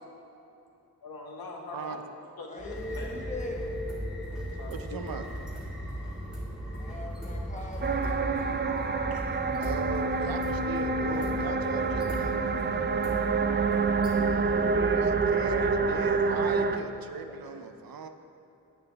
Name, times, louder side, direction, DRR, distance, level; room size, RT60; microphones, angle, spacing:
voice 1, 1.0-2.0 2.4-3.4 4.5-5.0 7.6-7.7 8.3-9.6, left 3 dB, 75° left, 0 dB, 1.3 m, -44 dB
voice 2, 2.5-3.6 6.8-8.7 13.4-15.7 17.1-17.6, left 2 dB, 20° left, 0 dB, 1.1 m, -43 dB
sound 1, 2.6-15.9, equal, ahead, 1.6 m, -37 dB
voice 3, 4.7-5.2 9.5-12.6 14.5-18.1, right 6 dB, 75° right, 8 dB, 0.6 m, -38 dB
sound 2, 7.8-16.8, right 4 dB, 30° right, 0.3 m, -27 dB
9.5 x 8.4 x 3.5 m, 3.0 s
wide cardioid pair, 100°, 36 cm